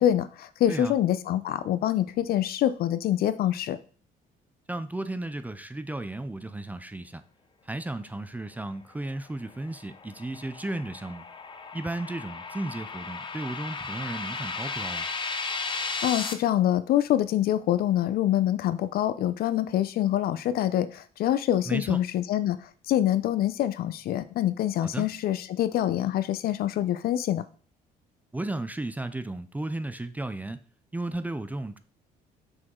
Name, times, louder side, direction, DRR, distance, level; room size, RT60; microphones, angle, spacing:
voice 1, 0.0-3.8 16.0-27.4, left 12 dB, 65° left, 14 dB, 0.6 m, -25 dB
voice 2, 4.7-7.2 7.6-11.2 11.7-15.1 21.7-22.0 24.8-25.1 28.3-30.6 30.9-31.8, right 2 dB, 10° right, 11 dB, 0.4 m, -34 dB
sound 1, 9.5-16.3, left 4 dB, 30° left, 0.8 m, -35 dB
6.3 x 4.7 x 3.7 m, 0.40 s
cardioid pair, 110°, 17 cm